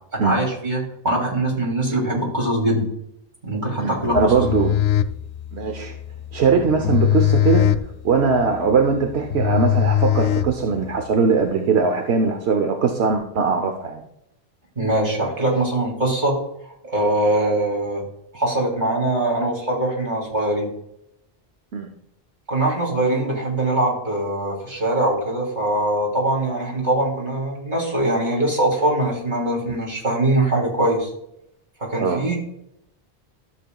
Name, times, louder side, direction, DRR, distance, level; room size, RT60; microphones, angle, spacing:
voice 1, 0.1-2.9 3.4-4.4 14.8-16.4 16.6-18.0 18.3-20.7 22.5-31.1 31.8-32.4, right 1 dB, 45° right, -2 dB, 3.0 m, -22 dB
voice 2, 3.8-4.8 5.5-5.9 6.3-7.7 8.0-14.0 21.7-21.9 32.0-32.2, right 5 dB, 80° right, 4 dB, 1.1 m, -20 dB
sound 1, 4.1-11.0, left 10 dB, 85° left, 0.8 m, -21 dB
13.0 x 7.3 x 2.3 m, 0.78 s
omnidirectional pair, 1.1 m